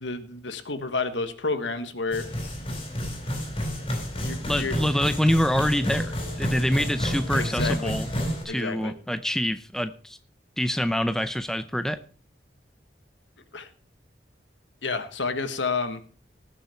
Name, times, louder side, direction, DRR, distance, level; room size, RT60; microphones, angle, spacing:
voice 1, 0.0-2.3 4.2-4.8 7.3-7.9 8.5-8.9 13.5-13.7 14.8-16.0, left 4 dB, 85° left, 10 dB, 1.5 m, -30 dB
sound 1, 2.1-8.4, equal, 30° left, 4.2 m, -30 dB
voice 2, 4.4-8.1 8.4-10.2 10.6-12.0, equal, 5° left, 11 dB, 0.6 m, -26 dB
19.0 x 7.2 x 4.4 m, 0.39 s
head